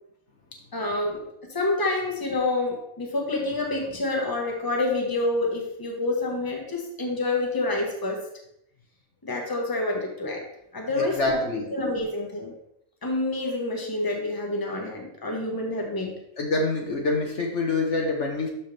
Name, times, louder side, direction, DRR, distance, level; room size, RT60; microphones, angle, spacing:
voice 1, 0.7-1.2 1.5-8.2 9.2-10.4 10.7-11.4 11.7-12.5 13.0-16.1, left 2 dB, 15° left, 0 dB, 1.4 m, -27 dB
voice 2, 11.0-11.7 16.4-18.5, left 3 dB, 55° left, 0 dB, 1.4 m, -26 dB
12.5 x 4.6 x 3.4 m, 0.77 s
omnidirectional pair, 1.5 m